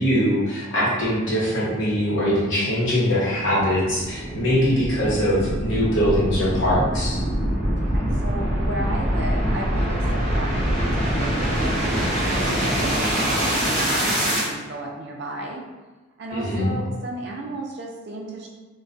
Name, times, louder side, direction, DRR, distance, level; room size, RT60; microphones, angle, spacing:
voice 1, 0.0-7.2 16.3-16.8, equal, 60° left, -7 dB, 0.9 m, -22 dB
sound 1, 3.0-14.5, equal, 30° left, 0.9 m, -24 dB
voice 2, 7.2-15.6 16.2-18.5, right 1 dB, 55° right, -1 dB, 0.4 m, -34 dB
2.3 x 2.2 x 2.5 m, 1.2 s
head